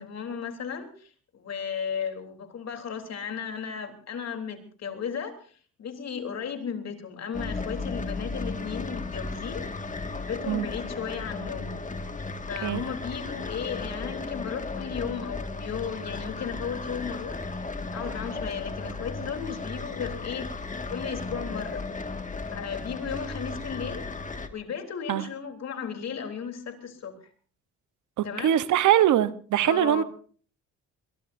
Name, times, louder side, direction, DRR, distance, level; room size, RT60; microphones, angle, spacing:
voice 1, 0.0-9.7 10.2-11.8 12.5-17.4 17.9-20.5 20.9-21.9 22.5-24.1 24.5-27.3 28.2-28.6 29.6-30.0, left 7 dB, 60° left, 5 dB, 3.6 m, -35 dB
sound 1, 7.3-24.5, left 3 dB, 25° left, 1.9 m, -35 dB
voice 2, 28.2-30.0, right 11 dB, 75° right, 14 dB, 1.2 m, -22 dB
22.5 x 22.0 x 2.7 m, 0.43 s
cardioid pair, 90°, 30 cm